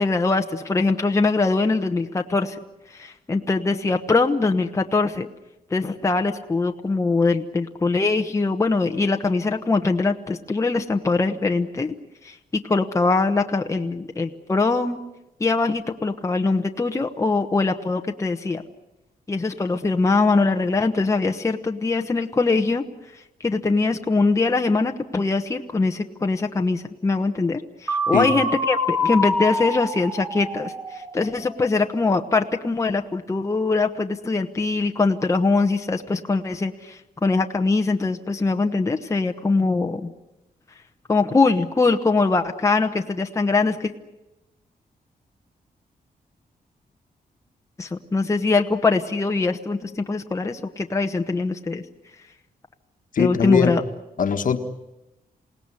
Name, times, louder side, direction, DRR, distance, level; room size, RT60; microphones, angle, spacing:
voice 1, 0.0-2.6 2.9-5.3 5.7-11.9 12.2-15.0 15.4-18.6 19.3-22.8 23.4-40.1 41.1-43.9 47.8-51.8 53.2-53.8, left 3 dB, 20° left, 4 dB, 1.1 m, -22 dB
sound 1, 27.9-31.7, left 1 dB, 10° right, 2.6 m, -26 dB
voice 2, 53.1-53.8 54.2-54.6, left 7 dB, 55° left, 7 dB, 1.5 m, -21 dB
28.0 x 18.5 x 9.8 m, 0.98 s
wide cardioid pair, 160°, 16 cm